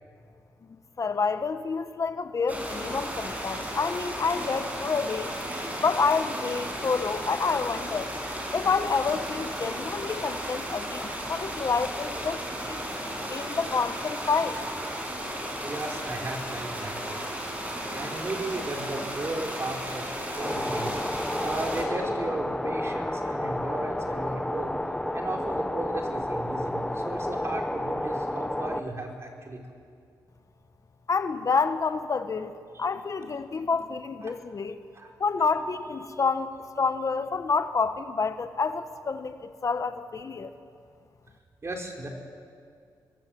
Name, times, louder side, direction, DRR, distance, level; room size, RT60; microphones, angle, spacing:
voice 1, 1.0-5.3 5.8-8.1 8.5-12.8 13.3-14.6 31.1-32.5 32.8-34.8 35.2-40.5, left 5 dB, 45° left, 9 dB, 1.1 m, -28 dB
sound 1, 2.5-21.8, equal, 20° right, 6.4 m, -34 dB
voice 2, 15.6-17.2 17.9-21.0 21.4-24.7 25.1-29.6 32.7-32.9 34.2-34.3 34.9-35.1 41.6-42.1, right 2 dB, 35° right, 1 dB, 4.4 m, -35 dB
sound 2, 20.4-28.8, left 1 dB, 10° left, 1.0 m, -31 dB
26.0 x 21.5 x 7.8 m, 2.3 s
cardioid pair, 90°, 8 cm